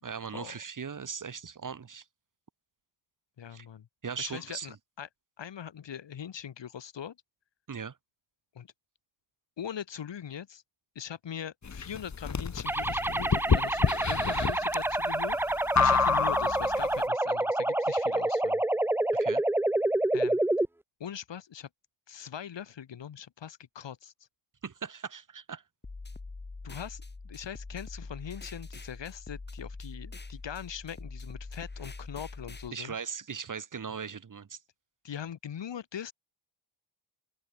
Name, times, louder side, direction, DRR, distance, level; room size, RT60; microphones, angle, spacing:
voice 1, 0.0-2.0 3.5-3.7 4.0-4.8 7.7-8.0 19.1-19.4 24.6-25.6 32.7-34.6, right 6 dB, 40° right, 3.1 m, -39 dB
voice 2, 3.4-3.9 4.2-5.1 5.4-7.2 8.5-8.7 9.6-10.6 10.9-18.6 20.1-20.4 21.0-21.7 22.1-24.1 26.6-33.0 35.0-36.1, left 9 dB, 65° left, 4.4 m, -41 dB
sound 1, 11.6-16.9, left 5 dB, 35° left, 3.8 m, -28 dB
sound 2, 12.7-20.7, right 1 dB, 5° right, 0.4 m, -28 dB
sound 3, 25.8-32.7, left 3 dB, 20° left, 6.0 m, -43 dB
open air
wide cardioid pair, 140°, 46 cm